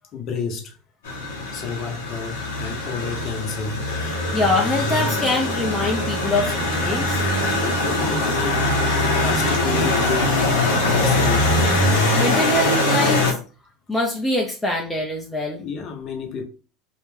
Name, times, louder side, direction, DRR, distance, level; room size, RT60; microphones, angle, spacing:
voice 1, 0.1-0.7 1.5-3.8 7.6-10.6 10.8-11.7 15.6-16.5, left 5 dB, 50° left, 0.7 m, -31 dB
sound 1, 1.0-13.3, left 2 dB, 80° left, 0.8 m, -22 dB
voice 2, 4.0-7.3 10.9-11.2 11.9-13.4 13.9-15.6, left 2 dB, 15° left, 0.6 m, -24 dB
2.4 x 2.2 x 3.2 m
hypercardioid pair, 90°, 0 cm